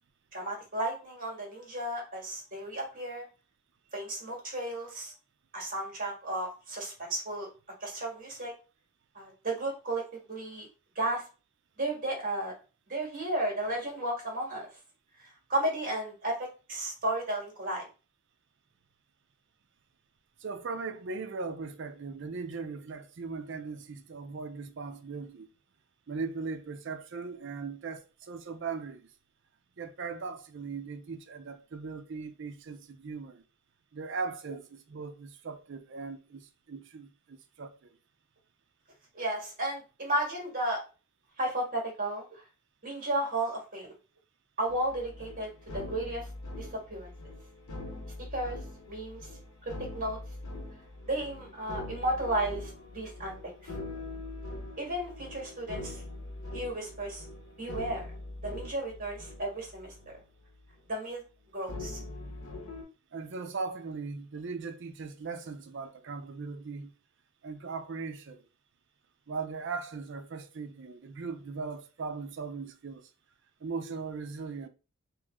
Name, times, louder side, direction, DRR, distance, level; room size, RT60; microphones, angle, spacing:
voice 1, 0.3-3.2 3.9-5.1 5.5-7.5 7.8-8.5 9.1-10.7 10.9-11.3 11.8-12.5 12.9-14.7 15.2-17.8 39.1-40.8 41.4-42.4 42.8-43.9 44.6-46.3 46.6-47.1 48.3-48.6 48.9-49.2 49.9-50.2 51.0-53.3 53.6-53.7 54.8-56.0 56.5-57.2 57.6-58.1 58.4-60.1 60.9-61.2 61.5-62.0, right 1 dB, 40° right, 1.7 m, -33 dB
voice 2, 20.4-25.5 26.1-29.1 29.8-33.4 33.9-37.9 63.1-66.9 67.4-68.4 69.3-73.1 73.6-74.7, right 4 dB, 55° right, 0.5 m, -39 dB
sound 1, 44.7-60.2 60.5-60.9 61.7-62.8, left 2 dB, 85° left, 1.0 m, -42 dB
3.0 x 3.0 x 3.6 m
head